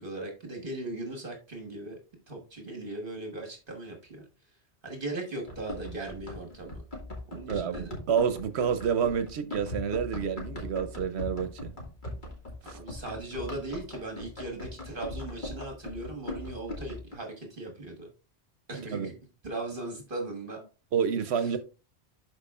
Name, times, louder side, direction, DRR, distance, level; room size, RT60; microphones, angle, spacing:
voice 1, 0.0-2.0 2.3-4.2 4.8-6.8 7.3-7.9 12.7-18.1 18.7-19.1 19.4-20.7 21.3-21.5, right 2 dB, 55° right, 1.6 m, -38 dB
Run, 5.5-17.2, left 2 dB, 50° left, 2.1 m, -40 dB
voice 2, 7.5-11.7 12.7-12.8 18.9-19.1 20.9-21.6, right 7 dB, 80° right, 0.9 m, -29 dB
11.5 x 4.7 x 2.4 m
omnidirectional pair, 1.1 m